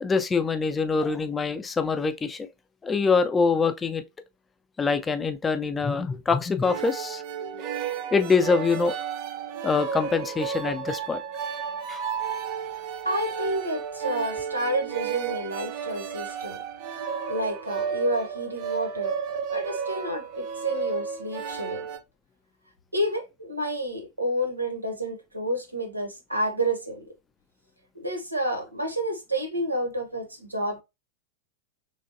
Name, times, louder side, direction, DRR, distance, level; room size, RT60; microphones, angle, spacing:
voice 1, 0.0-2.5 2.8-4.0 4.8-7.7 8.1-8.9 9.6-11.2 11.9-12.0, left 4 dB, 15° left, 0.4 m, -24 dB
sound 1, 6.6-22.0, right 7 dB, 45° right, 0.5 m, -32 dB
voice 2, 13.0-16.6 16.9-19.1 19.5-21.8 22.9-27.1 27.9-30.8, right 1 dB, 85° right, 0.8 m, -30 dB
3.3 x 3.1 x 2.5 m
figure-of-eight pair, 90°, 0 cm